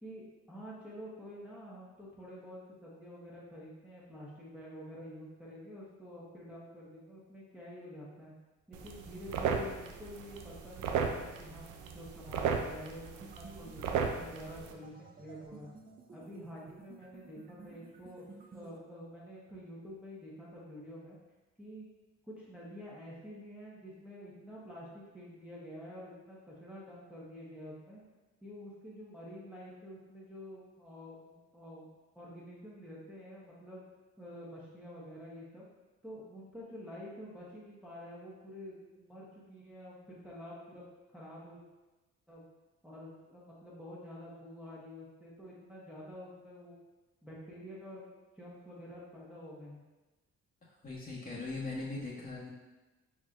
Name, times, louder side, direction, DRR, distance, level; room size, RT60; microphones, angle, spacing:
voice 1, 0.0-8.3 8.7-15.7 16.1-18.2 18.5-21.2 21.6-21.9 22.3-28.0 28.4-31.9 32.1-33.8 34.2-35.6 36.0-40.8 41.1-41.6 42.3-42.5 42.8-46.7 47.2-48.1 48.4-49.8, equal, 5° right, -8 dB, 1.2 m, -48 dB
sound 1, 8.7-14.7, right 6 dB, 90° right, 0.5 m, -36 dB
sound 2, 13.2-18.8, right 4 dB, 30° right, 0.5 m, -54 dB
voice 2, 50.8-52.5, left 3 dB, 30° left, -6 dB, 1.3 m, -39 dB
4.7 x 4.4 x 2.5 m, 1.1 s
cardioid pair, 90°, 30 cm